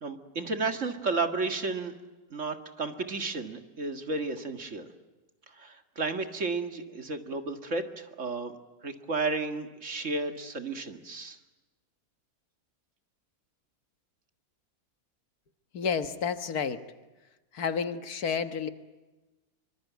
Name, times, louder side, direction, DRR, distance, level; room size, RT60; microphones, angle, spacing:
voice 1, 0.0-1.9 2.3-4.9 5.6-8.5 8.8-11.4, right 3 dB, 50° right, 7 dB, 2.2 m, -32 dB
voice 2, 15.7-16.9 17.5-18.7, left 6 dB, 70° left, 9 dB, 1.8 m, -30 dB
25.5 x 24.5 x 9.3 m, 1.2 s
omnidirectional pair, 1.7 m